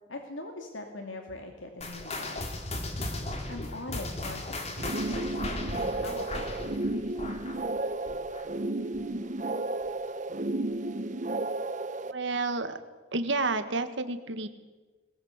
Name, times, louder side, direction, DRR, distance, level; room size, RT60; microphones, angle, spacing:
voice 1, 0.1-2.6 3.5-6.8, left 2 dB, 75° left, 4 dB, 2.4 m, -42 dB
sound 1, 1.8-8.7 8.9-9.3 9.8-9.9 10.7-10.8, left 2 dB, 35° left, 2.8 m, -37 dB
sound 2, 4.8-12.1, right 2 dB, 40° right, 0.9 m, -32 dB
voice 2, 12.1-12.8 13.1-14.5, right 3 dB, 65° right, 9 dB, 1.8 m, -30 dB
21.5 x 19.5 x 8.2 m, 1.3 s
head